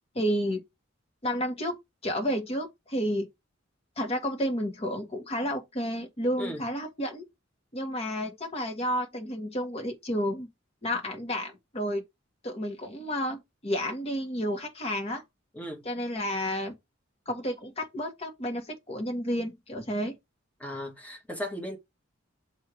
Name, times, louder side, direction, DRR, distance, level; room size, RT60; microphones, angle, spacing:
voice 1, 0.1-0.6 1.2-1.8 2.0-3.3 4.0-7.2 7.7-10.5 10.8-12.0 12.4-15.2 15.8-16.7 17.3-20.1, equal, 30° left, 1.5 m, -31 dB
voice 2, 20.6-21.8, equal, 10° left, 1.7 m, -36 dB
7.7 x 3.0 x 5.0 m
head